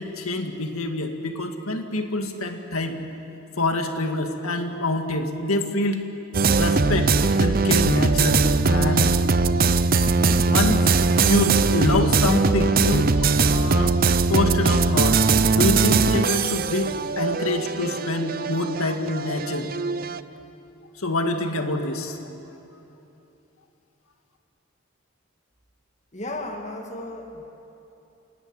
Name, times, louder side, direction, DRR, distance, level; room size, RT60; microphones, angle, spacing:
voice 1, 0.0-2.9 3.6-6.1 6.4-9.2 10.5-10.9 11.2-14.0 14.3-15.2 15.5-19.7 21.0-22.2, left 2 dB, 90° left, 5 dB, 2.1 m, -26 dB
sound 1, 6.3-20.2, right 4 dB, 45° right, 0.6 m, -20 dB
voice 2, 26.1-27.4, left 2 dB, 35° left, 3 dB, 2.0 m, -34 dB
28.5 x 18.0 x 9.8 m, 2.9 s
head